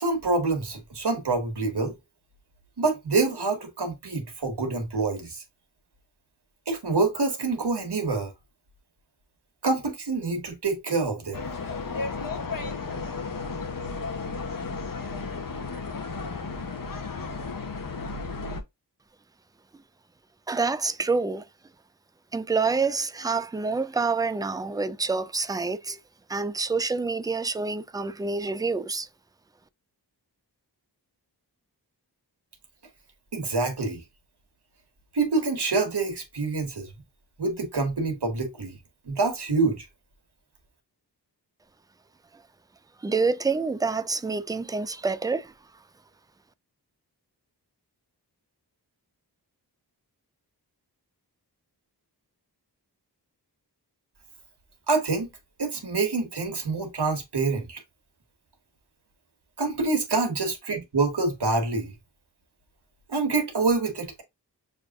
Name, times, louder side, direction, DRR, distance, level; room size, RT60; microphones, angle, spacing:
voice 1, 0.0-2.0 2.8-5.4 6.7-8.3 9.6-11.4 33.3-34.0 35.1-36.9 37.4-38.8 39.1-39.9 54.9-55.3 55.6-57.8 59.6-61.9 63.1-64.2, right 3 dB, 70° right, 1.3 m, -26 dB
sound 1, 11.3-18.6, left 4 dB, 55° left, 0.8 m, -33 dB
voice 2, 20.5-21.5 22.3-26.0 26.3-29.1 43.0-45.5, right 4 dB, 10° right, 0.3 m, -27 dB
6.4 x 2.6 x 2.4 m
wide cardioid pair, 55°, 41 cm